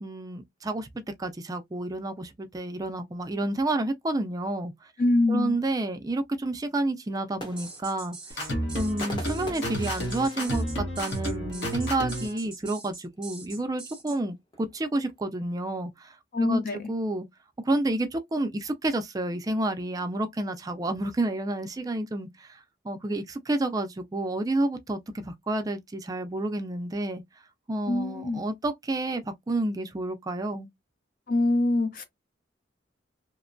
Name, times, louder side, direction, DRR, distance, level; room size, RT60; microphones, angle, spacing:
voice 1, 0.0-0.9 1.2-4.7 5.3-17.3 17.7-22.6 22.8-27.2 27.7-30.7, right 2 dB, 20° right, 0.3 m, -30 dB
voice 2, 5.0-5.6 16.3-16.9 27.9-28.4 31.3-32.0, left 2 dB, 50° left, 0.6 m, -24 dB
sound 1, 7.1-11.7 12.1-12.2 12.5-13.0 13.8-15.4, left 1 dB, 25° left, 0.9 m, -44 dB
sound 2, 7.6-14.2, right 3 dB, 5° right, 0.8 m, -43 dB
sound 3, 8.3-12.4, equal, 70° left, 1.0 m, -31 dB
2.9 x 2.1 x 2.5 m
head